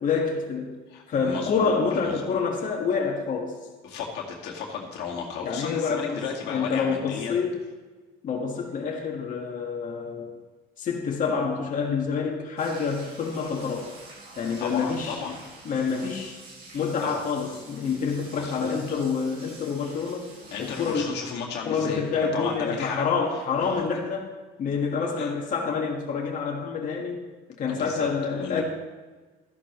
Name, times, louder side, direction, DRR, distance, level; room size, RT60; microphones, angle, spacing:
voice 1, 0.0-0.8 1.1-3.5 5.4-7.6 8.2-10.3 10.8-13.9 14.4-15.4 15.6-16.4 16.7-20.3 20.6-21.1 21.7-24.3 24.6-27.2 27.6-28.6, left 5 dB, 50° left, -1 dB, 1.7 m, -27 dB
voice 2, 0.9-1.8 2.0-2.4 3.8-7.4 14.6-15.4 17.0-17.1 18.4-19.0 20.5-23.0 23.3-23.4 23.8-23.9 25.2-25.3 27.7-28.6, left 6 dB, 85° left, -1 dB, 2.1 m, -34 dB
sound 1, 12.6-21.0, right 2 dB, 75° right, 4.0 m, -47 dB
13.0 x 11.5 x 3.1 m, 1.3 s
cardioid pair, 110°, 17 cm